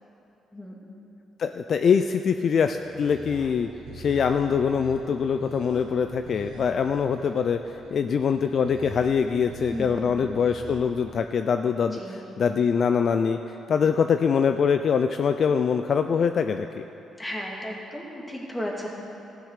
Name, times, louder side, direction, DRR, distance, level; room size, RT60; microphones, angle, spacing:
voice 1, 1.4-3.7 3.9-13.4 13.7-16.9, left 6 dB, 55° left, 8 dB, 0.4 m, -23 dB
sound 1, 2.6-10.8, right 3 dB, 80° right, 1.5 m, -44 dB
voice 2, 9.7-10.1 11.9-12.2 17.2-18.9, equal, 15° left, -2 dB, 2.3 m, -34 dB
15.0 x 7.0 x 6.5 m, 2.9 s
cardioid pair, 90°, 0 cm